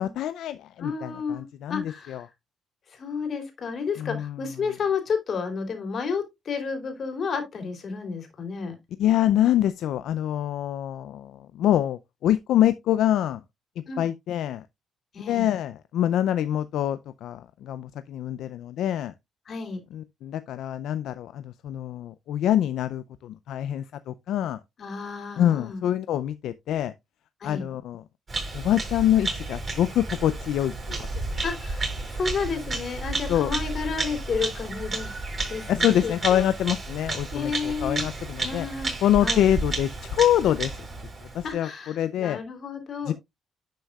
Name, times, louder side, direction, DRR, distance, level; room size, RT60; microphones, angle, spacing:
voice 1, 0.0-1.8 2.1-2.2 4.0-4.3 9.0-13.4 14.0-14.6 15.3-19.1 19.9-24.6 25.4-26.9 27.4-28.0 28.5-31.1 33.3-33.5 35.7-38.7 39.0-40.7 41.3-41.7 42.0-42.4 43.1-43.2, left 11 dB, 80° left, 0.4 m, -25 dB
voice 2, 0.8-2.3 2.9-8.7 13.9-14.1 15.1-15.5 19.5-19.8 24.8-25.8 27.4-27.7 31.4-35.1 35.5-36.5 37.3-38.0 38.4-38.9 39.2-39.5 41.4-43.1, left 5 dB, 50° left, 3.2 m, -31 dB
Bird vocalization bird call bird song, 28.3-41.5, right 3 dB, 35° right, 6.1 m, -32 dB
11.0 x 6.2 x 2.3 m
cardioid pair, 90°, 0 cm